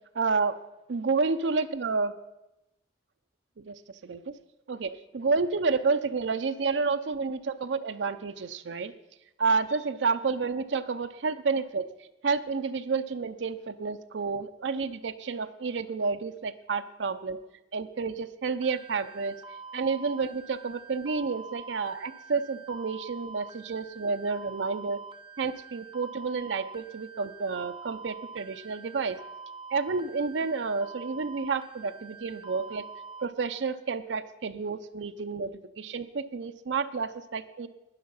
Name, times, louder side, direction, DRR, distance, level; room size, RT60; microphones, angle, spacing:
voice 1, 0.2-0.6 0.9-2.1 3.6-3.8 4.0-4.2 4.7-8.9 9.4-11.8 12.2-17.4 17.7-19.3 19.7-25.0 25.4-29.2 29.7-32.9 33.2-35.5 35.8-37.7, right 4 dB, 90° right, 9 dB, 0.6 m, -30 dB
sound 1, 18.6-33.2, right 4 dB, 30° right, 0.6 m, -45 dB
12.5 x 9.6 x 5.5 m, 0.94 s
head